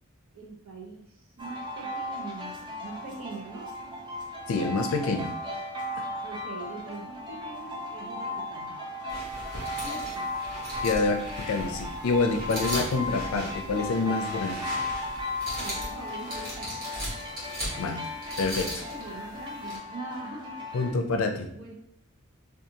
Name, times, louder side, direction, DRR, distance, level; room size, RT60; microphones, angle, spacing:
voice 1, 0.3-3.7 6.2-8.8 9.8-10.3 15.5-16.8 18.4-21.0 21.5-21.7, right 3 dB, 75° right, -1 dB, 0.8 m, -42 dB
sound 1, 1.4-20.9, left 1 dB, 20° right, 0.4 m, -36 dB
voice 2, 4.5-5.3 10.8-14.6 17.8-18.0 18.4-18.7 20.7-21.5, left 3 dB, 70° left, 5 dB, 0.4 m, -27 dB
sound 2, 9.1-19.8, right 1 dB, 45° right, 1.1 m, -38 dB
2.7 x 2.4 x 2.7 m, 0.72 s
head